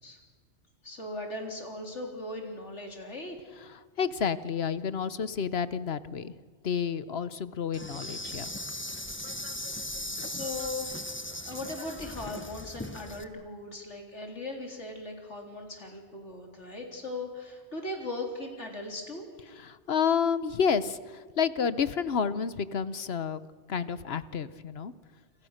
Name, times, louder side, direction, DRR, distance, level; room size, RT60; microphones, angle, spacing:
voice 1, 0.8-3.4 9.9-19.3, left 2 dB, 80° left, 2 dB, 4.2 m, -39 dB
voice 2, 4.0-6.3 6.6-8.5 19.6-23.4 23.7-24.9, left 6 dB, 65° left, 15 dB, 1.2 m, -30 dB
Insect, 7.7-13.2, left 1 dB, 10° left, 1.2 m, -38 dB
28.5 x 28.0 x 6.6 m, 1.5 s
omnidirectional pair, 1.2 m